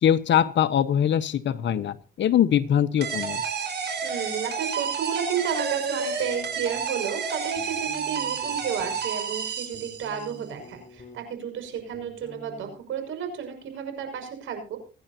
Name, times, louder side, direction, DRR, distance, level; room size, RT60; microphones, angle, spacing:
voice 1, 0.0-3.4, left 9 dB, 65° left, 12 dB, 1.3 m, -22 dB
sound 1, 3.0-10.4, right 6 dB, 60° right, 5.0 m, -30 dB
voice 2, 4.0-14.8, right 7 dB, 80° right, 5 dB, 6.3 m, -32 dB
sound 2, 6.2-7.0 7.5-9.0 9.5-11.4 11.6-12.7, left 1 dB, 35° left, 5.5 m, -48 dB
27.5 x 10.5 x 2.9 m, 0.36 s
cardioid pair, 90°, 20 cm